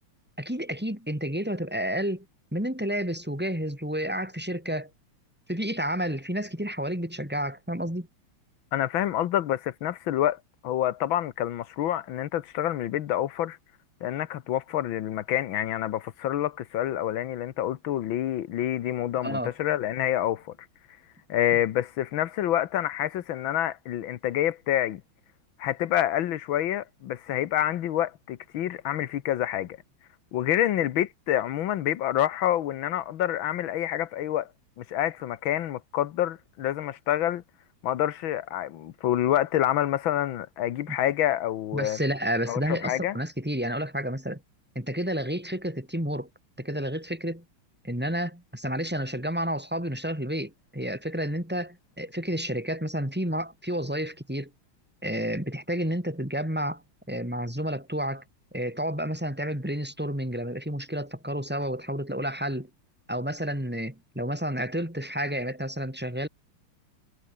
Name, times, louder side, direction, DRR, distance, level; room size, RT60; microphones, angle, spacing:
voice 1, 0.4-2.2 2.5-4.9 5.5-8.1 19.2-19.5 41.7-44.4 44.7-46.3 46.6-47.4 47.8-54.5 55.0-56.8 57.1-58.2 58.5-62.7 63.1-66.3, equal, 5° right, 4.9 m, -30 dB
voice 2, 8.7-13.6 14.0-20.5 21.3-25.0 25.6-29.8 30.3-34.5 34.8-37.4 37.8-42.0 42.5-43.2, left 12 dB, 70° left, 1.7 m, -27 dB
omnidirectional pair, 2.4 m